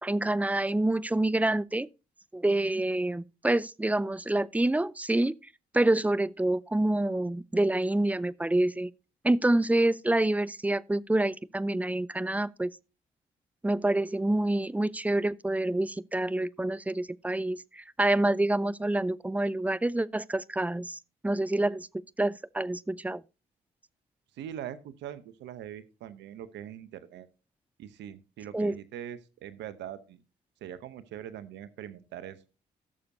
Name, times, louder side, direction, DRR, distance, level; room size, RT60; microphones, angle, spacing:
voice 1, 0.0-1.9 2.3-5.3 5.7-8.9 9.2-12.7 13.6-21.9 22.2-23.2 28.5-28.8, right 1 dB, 10° right, 0.4 m, -27 dB
voice 2, 24.3-27.3 27.8-30.2 30.6-32.4, right 10 dB, 80° right, 0.8 m, -42 dB
16.0 x 6.8 x 2.6 m
supercardioid pair, 55°, 18 cm